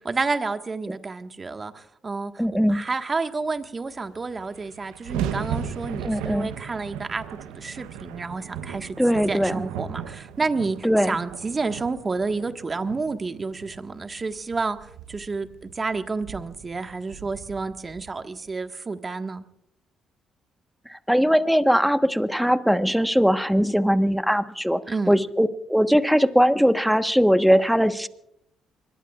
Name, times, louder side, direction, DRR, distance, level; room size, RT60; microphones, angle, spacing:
voice 1, 0.0-2.3 2.7-9.0 9.3-19.4 24.9-25.1, right 4 dB, 35° right, 7 dB, 1.6 m, -30 dB
voice 2, 2.4-2.8 6.0-6.5 9.0-9.6 10.8-11.2 20.9-24.8 25.1-28.1, equal, ahead, 9 dB, 1.2 m, -20 dB
sound 1, 3.9-4.0 4.2-18.5, right 8 dB, 85° right, 0.8 m, -37 dB
26.0 x 22.0 x 2.5 m, 0.77 s
supercardioid pair, 55°, 0 cm